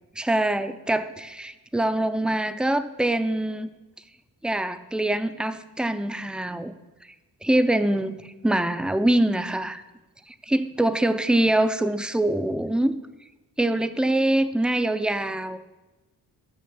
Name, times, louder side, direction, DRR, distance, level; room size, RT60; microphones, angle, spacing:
voice 1, 0.2-3.7 4.4-6.7 7.4-8.2 8.4-9.8 10.4-12.9 13.6-15.6, right 1 dB, 5° right, 11 dB, 0.3 m, -24 dB
6.5 x 5.9 x 6.9 m, 1.1 s
wide cardioid pair, 105°, 38 cm